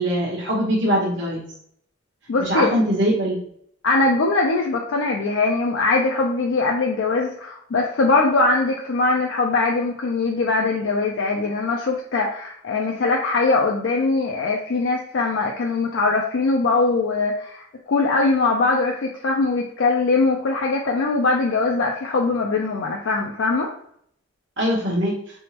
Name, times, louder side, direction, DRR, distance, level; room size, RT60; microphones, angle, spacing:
voice 1, 0.0-1.4 2.4-3.4 24.6-25.1, equal, 60° right, -4 dB, 0.9 m, -22 dB
voice 2, 2.3-2.8 3.8-23.7, left 3 dB, 65° left, 0 dB, 0.4 m, -21 dB
3.5 x 2.9 x 2.8 m, 0.66 s
head